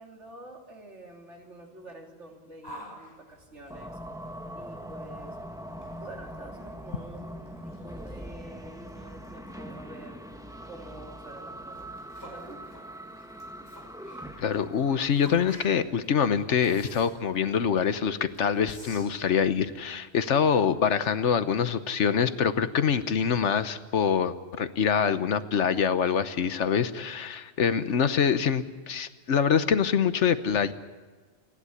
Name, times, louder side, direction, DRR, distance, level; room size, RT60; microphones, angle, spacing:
voice 1, 0.0-4.0 4.5-5.4 5.9-10.2 10.7-11.9 12.2-12.7, right 2 dB, 85° right, 1 dB, 3.5 m, -47 dB
Yell, 2.6-19.8, equal, 20° left, 6.0 m, -51 dB
sound 1, 3.7-15.7, equal, 5° right, 1.2 m, -42 dB
voice 2, 14.4-30.7, left 7 dB, 90° left, 12 dB, 1.3 m, -25 dB
28.5 x 11.0 x 9.9 m, 1.4 s
omnidirectional pair, 1.2 m